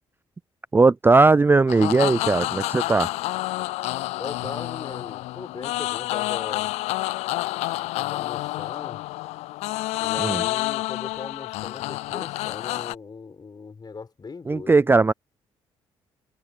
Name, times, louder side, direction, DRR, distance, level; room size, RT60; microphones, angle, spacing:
voice 1, 0.7-3.1 10.2-10.4 14.5-15.1, right 3 dB, 20° right, 0.4 m, -18 dB
sound 1, 1.7-12.9, left 19 dB, 75° left, 0.4 m, -29 dB
voice 2, 4.2-6.7 7.9-9.0 10.0-14.9, left 4 dB, 40° left, 6.3 m, -39 dB
supercardioid pair, 55°, 11 cm